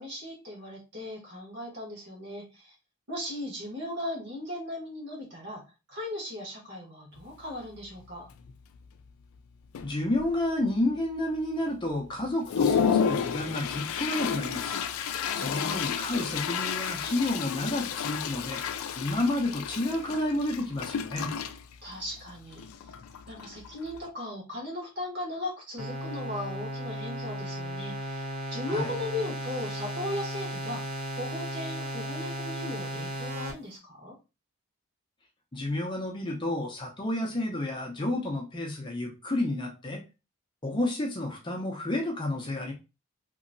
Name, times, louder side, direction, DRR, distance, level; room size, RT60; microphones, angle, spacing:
voice 1, 0.0-2.7 3.1-5.6 5.9-8.3 15.4-15.7 21.8-22.6 23.3-28.2 28.5-30.9 31.1-34.1, left 1 dB, 50° right, -2 dB, 1.4 m, -37 dB
Toilet flush, 7.2-7.3 7.8-8.0 8.3-8.9 9.4-9.5 9.7-10.5 11.0-11.1 11.6-11.7 12.1-24.1, left 7 dB, 75° left, 0.3 m, -31 dB
voice 2, 9.8-14.8 15.3-18.6 19.0-21.3 28.7-28.9 35.5-40.0 40.6-42.7, left 1 dB, 20° left, 0 dB, 0.5 m, -30 dB
sound 1, 25.8-33.5, equal, 80° right, 1.5 m, -35 dB
2.9 x 2.7 x 2.5 m, 0.29 s
head